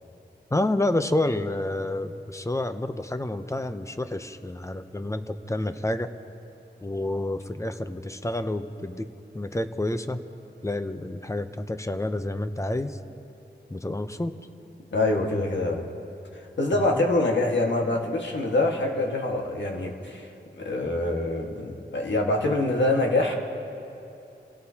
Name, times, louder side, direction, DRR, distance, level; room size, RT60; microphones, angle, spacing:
voice 1, 0.5-6.1 6.8-9.1 9.3-10.2 10.6-13.0 13.7-14.4 16.7-17.1, left 1 dB, 15° left, 9 dB, 0.6 m, -29 dB
voice 2, 14.9-15.8 16.6-20.3 20.6-23.4, left 2 dB, 85° left, 0 dB, 1.7 m, -25 dB
27.5 x 17.5 x 2.9 m, 2.8 s
wide cardioid pair, 110°, 18 cm